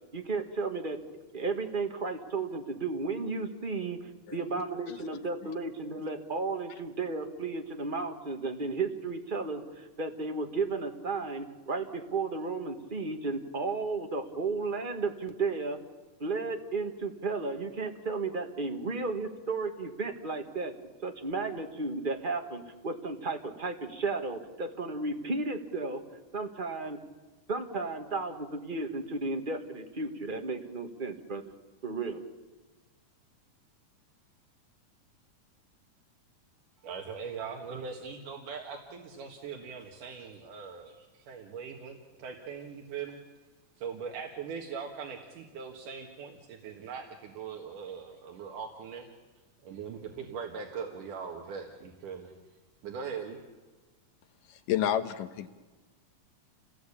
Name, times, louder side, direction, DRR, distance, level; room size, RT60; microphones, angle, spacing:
voice 1, 0.1-1.0 1.3-4.0 4.3-15.8 16.2-20.7 21.0-26.0 26.3-27.0 27.5-31.4 31.8-32.2, right 3 dB, 25° right, 4 dB, 1.0 m, -33 dB
voice 2, 36.8-43.2 43.8-49.1 49.6-52.3 52.8-53.4, right 6 dB, 75° right, 2 dB, 3.2 m, -41 dB
voice 3, 54.5-55.5, left 10 dB, 85° left, 9 dB, 2.8 m, -30 dB
29.0 x 19.0 x 8.6 m, 1.2 s
omnidirectional pair, 3.7 m